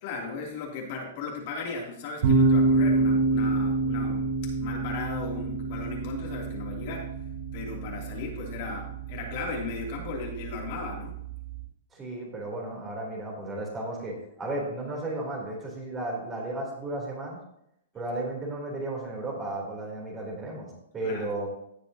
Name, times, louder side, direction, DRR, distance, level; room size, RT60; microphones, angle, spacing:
voice 1, 0.0-4.3 4.6-7.1 7.5-11.2 21.0-21.3, left 4 dB, 45° left, -2 dB, 2.8 m, -36 dB
sound 1, 2.2-11.6, right 3 dB, 55° right, 4.7 m, -27 dB
voice 2, 11.9-17.4 17.9-21.5, right 2 dB, 15° right, -2 dB, 3.3 m, -34 dB
17.0 x 6.9 x 2.9 m, 0.76 s
hypercardioid pair, 155°, 0 cm